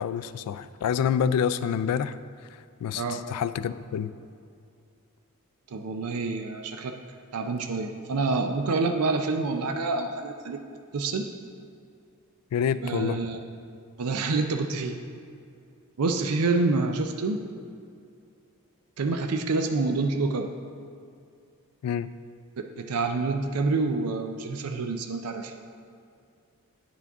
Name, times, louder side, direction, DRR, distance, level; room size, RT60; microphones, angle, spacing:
voice 1, 0.0-4.1 12.5-13.2 21.8-22.1, left 8 dB, 85° left, 16 dB, 0.3 m, -28 dB
voice 2, 5.7-7.0 7.3-10.6 10.9-11.3 12.8-13.4 14.0-15.0 16.0-17.4 19.0-20.5 22.7-25.5, right 3 dB, 80° right, 5 dB, 0.5 m, -27 dB
9.5 x 6.0 x 3.5 m, 2.4 s
head